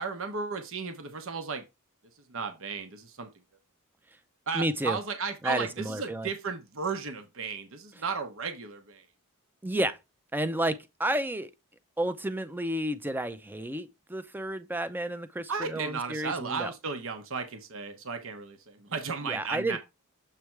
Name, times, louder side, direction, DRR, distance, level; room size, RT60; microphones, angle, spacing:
voice 1, 0.0-1.6 2.3-3.3 4.5-9.0 15.5-19.8, right 5 dB, 65° right, 1.0 m, -34 dB
voice 2, 4.5-5.0 5.4-6.3 9.6-10.0 10.3-11.5 12.0-16.7 19.2-19.8, right 1 dB, 10° right, 0.5 m, -31 dB
7.4 x 3.4 x 4.5 m
head